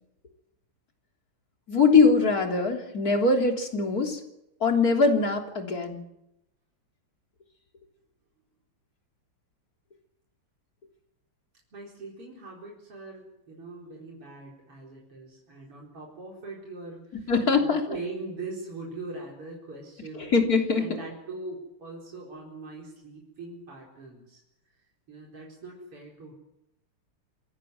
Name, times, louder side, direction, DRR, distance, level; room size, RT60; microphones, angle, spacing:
voice 1, 1.7-4.2 4.6-6.0 17.3-17.8 20.2-20.9, left 4 dB, 40° left, 3 dB, 3.9 m, -22 dB
voice 2, 11.7-20.3 20.8-24.4 25.1-26.3, right 3 dB, 90° right, -2 dB, 5.5 m, -41 dB
27.5 x 15.0 x 9.4 m, 0.85 s
omnidirectional pair, 2.4 m